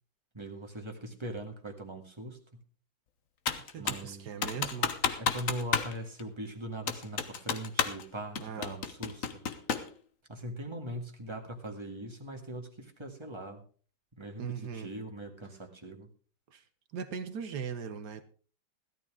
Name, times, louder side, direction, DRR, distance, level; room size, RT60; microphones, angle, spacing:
voice 1, 0.3-2.6 3.8-4.3 5.2-9.2 10.3-13.6 14.1-16.1, right 1 dB, 15° right, 1.8 m, -41 dB
Computer keyboard, 3.5-4.1 4.4-5.9 6.2-6.3 6.9-8.0 8.4-9.9, left 6 dB, 50° left, 1.2 m, -31 dB
voice 2, 3.6-5.0 8.4-8.8 14.4-14.9 16.5-16.6 16.9-18.2, right 6 dB, 60° right, 1.4 m, -39 dB
16.5 x 12.5 x 3.6 m
omnidirectional pair, 2.3 m